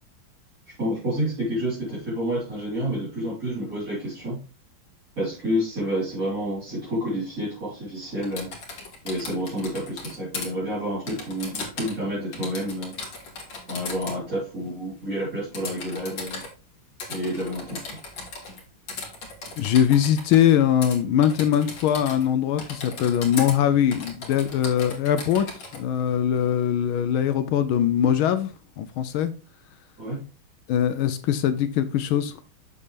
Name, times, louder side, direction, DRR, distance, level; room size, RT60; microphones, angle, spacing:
voice 1, 0.7-4.4 5.2-8.5 9.0-12.9 13.7-16.4 17.1-17.8 30.0-30.2, equal, 40° right, 4.0 m, -29 dB
Typing, 8.2-10.5 11.1-12.0 12.3-14.2 15.5-16.5 17.0-18.6 18.9-20.4 20.8-21.0 21.2-22.3 22.6-23.6 23.9-25.8, left 3 dB, 60° left, 2.5 m, -37 dB
voice 2, 19.6-25.5 25.7-28.5 28.8-29.3 30.7-32.3, left 9 dB, 80° left, 1.4 m, -22 dB
7.3 x 6.7 x 3.3 m
omnidirectional pair, 2.3 m